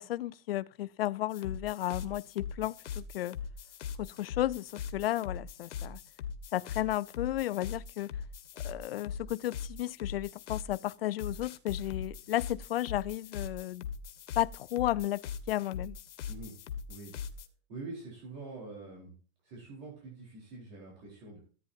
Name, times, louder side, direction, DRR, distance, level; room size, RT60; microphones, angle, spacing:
voice 1, 0.0-3.4 4.0-6.0 6.5-8.1 8.6-13.9 14.4-16.0, left 14 dB, 55° left, 0.5 m, -33 dB
sound 1, 1.3-17.5, left 6 dB, 85° left, 1.6 m, -41 dB
voice 2, 17.7-19.2 19.4-21.4, right 3 dB, 40° right, 4.4 m, -45 dB
14.0 x 9.7 x 2.7 m
supercardioid pair, 180°, 35 cm